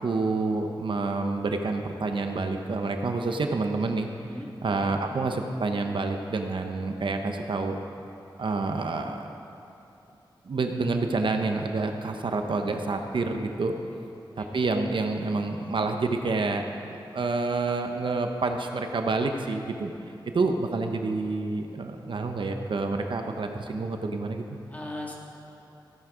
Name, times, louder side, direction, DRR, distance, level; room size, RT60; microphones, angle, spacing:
voice 1, 0.0-4.1 4.6-7.8 8.4-9.2 10.4-13.7 14.4-19.9 20.2-24.4, right 3 dB, 75° right, 4 dB, 0.8 m, -28 dB
voice 2, 4.2-4.9 13.8-14.0 14.3-14.5 24.7-25.2, left 1 dB, 20° left, -2 dB, 2.0 m, -40 dB
15.0 x 9.7 x 5.0 m, 2.9 s
wide cardioid pair, 105°, 8 cm